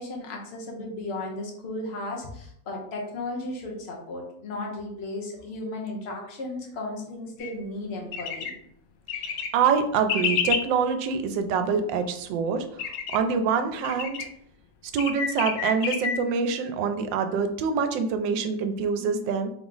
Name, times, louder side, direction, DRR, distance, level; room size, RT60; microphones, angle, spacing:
voice 1, 0.0-8.5, left 2 dB, 45° left, -1 dB, 1.0 m, -35 dB
sound 1, 7.4-7.5 8.1-8.5 9.1-9.5 10.1-10.6 12.8-13.2 13.8-14.2 15.0-16.2, left 7 dB, 70° left, 0.8 m, -28 dB
voice 2, 9.5-12.8 13.1-14.2 14.9-19.5, right 5 dB, 80° right, 7 dB, 1.3 m, -25 dB
3.7 x 3.0 x 3.8 m, 0.71 s
omnidirectional pair, 2.0 m